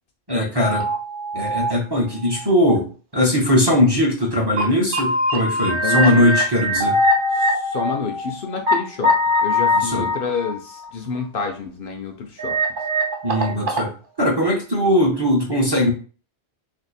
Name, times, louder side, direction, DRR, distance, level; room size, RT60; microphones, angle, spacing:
voice 1, 0.3-0.9 1.3-2.9 3.1-7.0 9.7-10.1 13.2-13.9 14.2-15.9, left 1 dB, 25° right, -3 dB, 0.7 m, -19 dB
sound 1, 0.6-1.7 2.3-2.4 4.2-4.3 4.6-4.7 4.9-8.7 9.0-10.9 12.4-13.9, left 1 dB, 55° right, 0.8 m, -22 dB
voice 2, 5.8-6.3 7.3-9.1 9.4-12.6, left 4 dB, 60° left, 4 dB, 0.7 m, -28 dB
2.6 x 2.6 x 4.1 m, 0.37 s
omnidirectional pair, 1.1 m